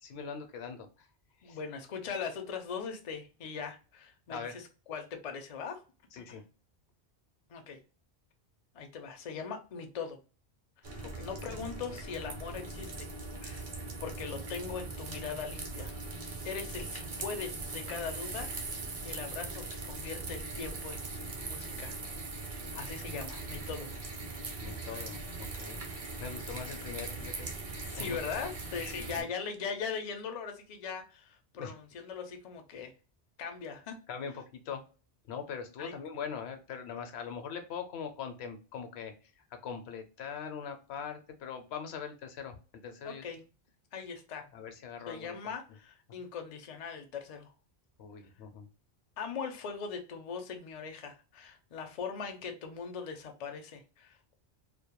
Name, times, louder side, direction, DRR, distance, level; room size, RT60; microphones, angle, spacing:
voice 1, 0.0-1.1 1.4-1.6 4.3-4.6 6.1-6.4 11.0-11.3 24.6-25.8 26.2-27.5 27.9-28.2 29.0-29.3 31.5-31.7 34.1-34.8 35.3-42.6 42.8-43.2 44.5-45.5 48.0-48.7, left 6 dB, 80° left, 7 dB, 0.8 m, -42 dB
voice 2, 1.4-4.6 4.9-5.8 6.2-6.4 7.5-7.8 8.7-10.2 10.8-13.1 13.4-13.7 14.0-15.9 16.4-21.0 21.4-22.0 22.7-23.9 24.9-25.1 27.9-32.9 33.4-34.0 35.8-35.9 43.0-43.4 43.9-44.5 45.1-47.5 49.2-54.3, left 6 dB, 55° left, 5 dB, 0.4 m, -40 dB
sound 1, 10.8-29.2, right 3 dB, 45° right, 0.5 m, -40 dB
2.2 x 2.1 x 2.8 m, 0.34 s
omnidirectional pair, 1.1 m